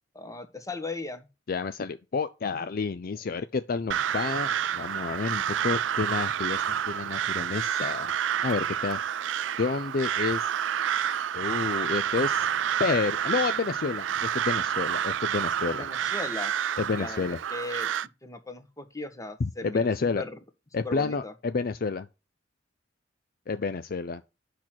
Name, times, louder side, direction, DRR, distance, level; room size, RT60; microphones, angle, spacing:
voice 1, 0.1-1.3 3.4-3.5 15.6-16.5 17.0-17.9 18.2-20.4 20.8-21.3, left 2 dB, 20° left, 1.4 m, -38 dB
voice 2, 1.5-8.1 8.4-9.0 9.6-10.5 11.3-12.5 12.8-15.9 16.8-17.4 19.4-20.2 20.7-22.1 23.5-24.2, left 4 dB, 50° left, 0.5 m, -30 dB
Crow, 3.9-18.1, right 9 dB, 80° right, 0.4 m, -29 dB
8.4 x 6.0 x 4.4 m
head